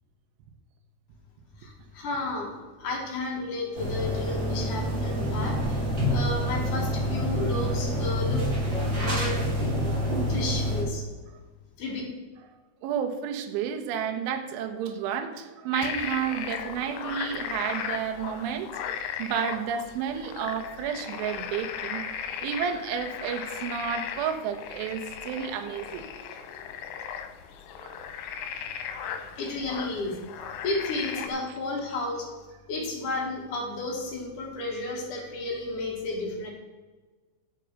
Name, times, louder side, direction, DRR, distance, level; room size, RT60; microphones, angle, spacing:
voice 1, 1.6-5.8 6.1-8.4 8.9-9.4 10.3-11.0 11.8-12.0 29.4-30.2 30.6-32.3 32.7-36.5, left 2 dB, 50° left, -1 dB, 2.8 m, -32 dB
sound 1, 3.7-10.8, equal, 30° right, 2.8 m, -27 dB
voice 2, 12.8-18.7 19.2-22.0 22.4-26.0 27.8-28.0, right 8 dB, 80° right, 6 dB, 3.4 m, -31 dB
sound 2, 15.7-31.3, left 7 dB, 80° left, 3.5 m, -37 dB
11.5 x 6.8 x 6.5 m, 1.3 s
omnidirectional pair, 5.7 m